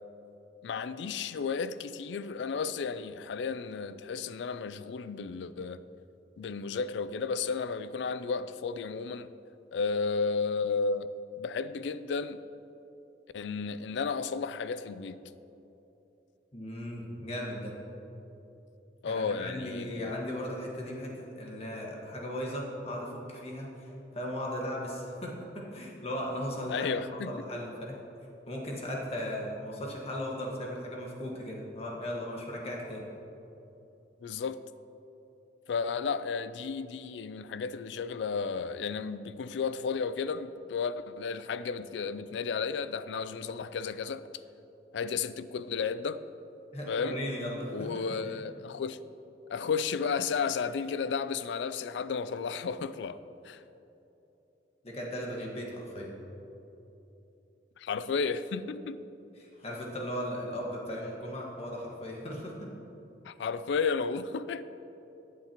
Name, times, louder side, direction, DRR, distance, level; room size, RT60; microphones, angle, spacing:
voice 1, 0.6-5.8 6.4-9.3 9.7-11.1 11.4-12.4 13.3-15.2 19.0-20.1 26.7-27.3 34.2-34.6 35.7-44.3 44.9-46.2 46.9-47.2 47.7-49.0 49.5-53.2 53.4-53.6 57.8-59.0 63.2-64.6, left 5 dB, 85° left, 0.4 m, -33 dB
voice 2, 16.5-17.7 19.0-26.9 27.3-28.0 28.5-33.1 46.7-48.4 54.8-56.1 59.4-62.7, equal, 35° left, 1.5 m, -37 dB
14.5 x 8.4 x 2.9 m
head